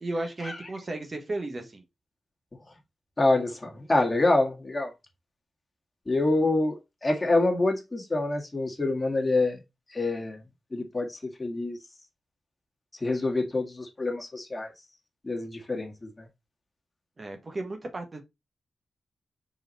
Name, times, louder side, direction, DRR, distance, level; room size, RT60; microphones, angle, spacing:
voice 1, 0.0-1.8 17.2-18.2, right 2 dB, 40° right, 1.7 m, -34 dB
voice 2, 3.2-4.9 6.1-9.6 9.9-10.4 10.7-11.8 13.0-14.7 15.2-16.1, left 2 dB, 25° left, 2.0 m, -26 dB
4.9 x 4.8 x 4.2 m
cardioid pair, 75°, 0 cm